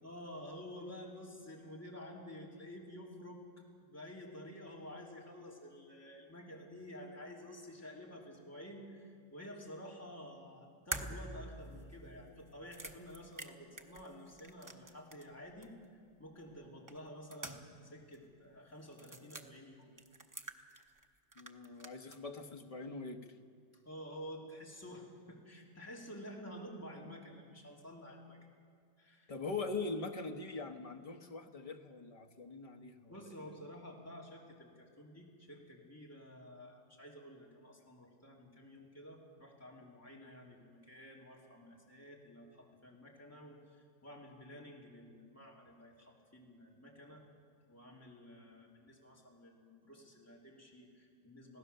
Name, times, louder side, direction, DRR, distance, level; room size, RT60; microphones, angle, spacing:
voice 1, 0.0-3.4 3.8-15.7 16.2-19.9 23.8-28.4 29.0-29.3 33.1-47.2 47.7-51.6, equal, 5° left, -2 dB, 3.0 m, -51 dB
sound 1, 10.9-15.3 15.6-15.7 16.9-17.9 18.1-18.2 18.9-19.5 20.0-21.0 21.3-22.2, right 2 dB, 30° right, 0.3 m, -46 dB
voice 2, 21.3-23.3 29.3-33.1, left 3 dB, 25° left, 4 dB, 0.9 m, -42 dB
25.0 x 17.0 x 6.8 m, 2.1 s
omnidirectional pair, 2.1 m